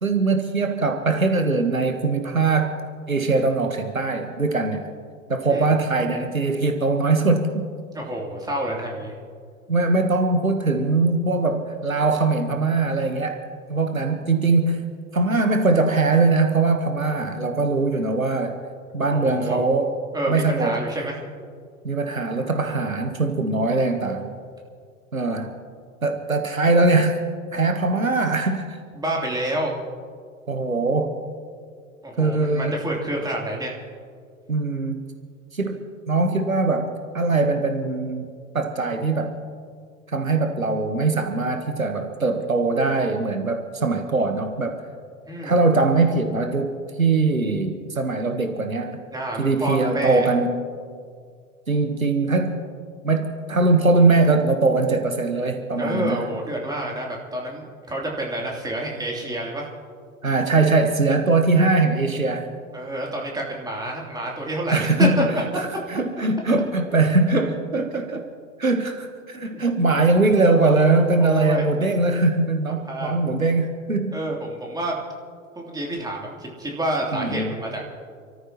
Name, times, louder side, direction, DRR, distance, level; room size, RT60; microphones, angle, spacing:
voice 1, 0.0-2.8 3.1-4.9 5.3-7.5 9.7-13.4 13.7-14.8 15.1-18.6 18.9-19.9 20.3-20.8 21.8-24.3 25.1-25.5 26.0-27.2 27.5-28.8 30.5-31.2 32.2-32.8 34.5-35.0 35.5-35.8 36.1-38.3 38.5-39.4 40.1-44.8 45.4-49.0 49.4-50.5 51.7-52.6 53.0-56.2 60.2-62.5 64.7-65.4 65.9-68.2 68.6-74.2 77.1-77.5, right 3 dB, 90° right, 6 dB, 1.3 m, -21 dB
voice 2, 7.9-9.1 19.1-19.6 20.1-21.2 28.9-29.7 32.0-33.7 45.3-45.5 49.1-50.3 55.8-59.7 62.7-65.1 71.2-71.6 72.9-73.2 74.1-75.0 75.5-77.8, right 1 dB, 10° right, -2 dB, 3.2 m, -28 dB
29.0 x 14.0 x 3.0 m, 2.1 s
figure-of-eight pair, 85°, 40 cm